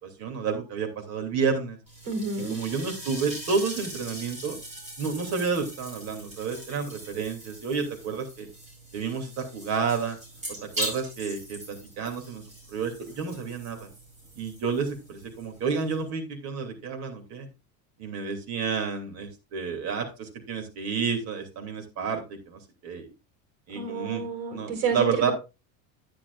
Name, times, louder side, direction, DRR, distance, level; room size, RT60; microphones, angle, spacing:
voice 1, 0.0-1.8 2.4-4.6 5.0-8.5 8.9-10.2 10.8-12.4 12.7-13.9 14.4-17.5 18.0-23.1 23.7-24.2 24.5-25.3, right 5 dB, 45° right, 3 dB, 2.8 m, -30 dB
sound 1, 1.9-16.1, right 1 dB, 20° right, 4.9 m, -41 dB
voice 2, 2.1-2.6 23.8-25.3, right 5 dB, 70° right, 5 dB, 4.3 m, -29 dB
10.5 x 9.7 x 2.5 m, 0.27 s
cardioid pair, 160°, 35 cm